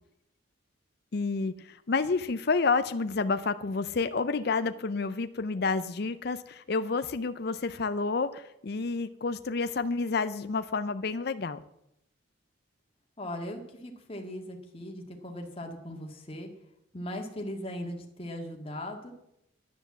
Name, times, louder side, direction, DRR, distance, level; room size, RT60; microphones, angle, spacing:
voice 1, 1.1-11.6, left 4 dB, 50° left, 11 dB, 0.5 m, -29 dB
voice 2, 13.2-16.5 16.9-19.1, left 1 dB, 30° left, 2 dB, 1.9 m, -39 dB
10.5 x 10.5 x 7.3 m, 0.82 s
head